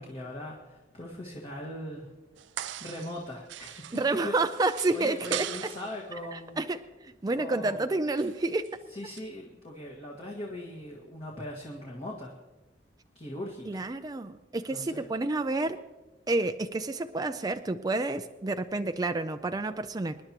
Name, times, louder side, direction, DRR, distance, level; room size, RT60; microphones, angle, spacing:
voice 1, 0.0-2.1 2.6-4.3 4.9-6.6 7.4-7.9 8.9-12.3 13.1-13.9 14.7-15.0, left 1 dB, 35° left, -3 dB, 1.7 m, -40 dB
sound 1, 2.4-3.2 3.5-6.0 8.2-8.7 9.1-9.2, right 12 dB, 80° right, 0.4 m, -39 dB
voice 2, 3.9-5.7 6.3-8.7 13.7-15.8 16.3-20.2, right 2 dB, 20° right, 8 dB, 0.4 m, -29 dB
26.0 x 10.5 x 2.9 m, 1.2 s
head